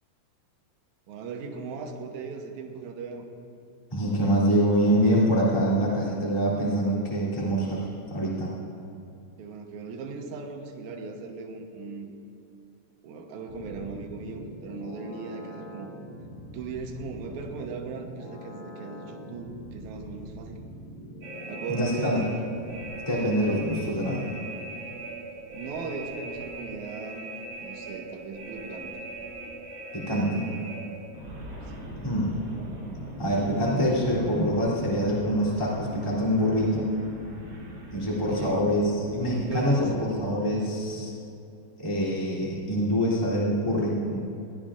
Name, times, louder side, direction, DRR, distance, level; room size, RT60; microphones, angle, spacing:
voice 1, 1.1-3.3 9.4-12.1 13.0-15.9 16.5-20.6 21.5-22.4 25.5-27.3 27.6-28.9 31.7-31.9 38.1-38.7 39.1-40.0, right 4 dB, 75° right, 2 dB, 1.7 m, -38 dB
voice 2, 3.9-8.5 21.7-22.2 23.1-24.3 29.9-30.6 32.0-32.3 33.2-36.9 37.9-41.1 41.8-44.2, equal, 10° left, -6 dB, 2.3 m, -25 dB
sound 1, 13.5-22.9, equal, 75° left, 4.5 m, -44 dB
sound 2, 21.2-40.4, right 1 dB, 35° right, 2.3 m, -40 dB
21.5 x 16.5 x 2.5 m, 2.6 s
omnidirectional pair, 4.9 m